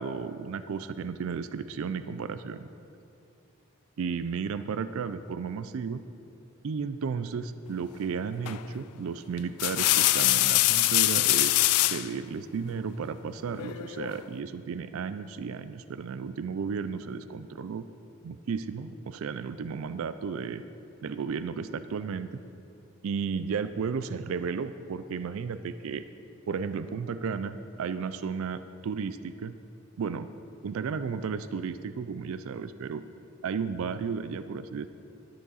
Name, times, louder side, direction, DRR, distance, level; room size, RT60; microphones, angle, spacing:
voice 1, 0.0-2.7 4.0-6.0 6.6-11.6 11.9-17.9 18.2-20.6 21.0-22.4 23.0-26.0 26.5-29.5 30.0-30.3 30.6-33.0 33.4-34.9, right 5 dB, 65° right, 12 dB, 0.4 m, -33 dB
sound 1, 8.5-8.8 9.4-12.1 13.6-14.2, left 17 dB, 90° left, 0.4 m, -24 dB
13.0 x 9.4 x 4.1 m, 2.6 s
head